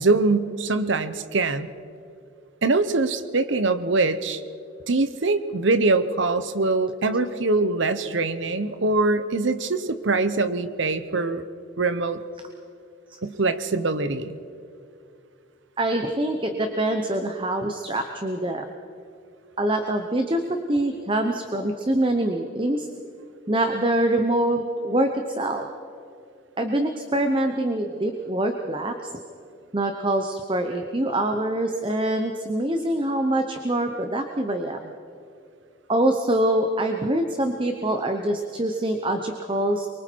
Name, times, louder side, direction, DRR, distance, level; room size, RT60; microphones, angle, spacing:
voice 1, 0.0-1.7 2.6-4.4 4.9-11.4 11.8-12.2 13.2-14.4, right 3 dB, 65° right, 11 dB, 0.9 m, -23 dB
voice 2, 15.8-18.7 19.6-22.9 23.5-25.6 26.6-29.2 29.7-34.9 35.9-39.9, right 1 dB, 25° right, 5 dB, 0.9 m, -25 dB
24.0 x 23.5 x 4.6 m, 2.5 s
head